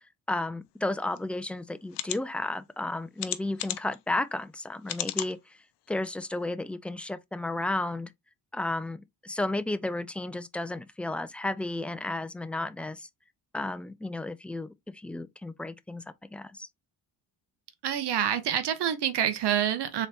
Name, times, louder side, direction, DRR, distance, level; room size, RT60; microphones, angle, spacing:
voice 1, 0.3-5.4 5.9-8.1 8.5-13.1 13.5-16.0 16.3-16.7, left 2 dB, 5° left, 0.4 m, -33 dB
sound 1, 1.2-1.3 1.9-2.2 3.2-4.0 4.9-5.3 5.9-6.0 6.3-6.4, left 13 dB, 70° left, 0.6 m, -33 dB
voice 2, 17.8-20.1, right 10 dB, 70° right, 0.8 m, -27 dB
3.8 x 3.1 x 3.3 m
cardioid pair, 75°, 42 cm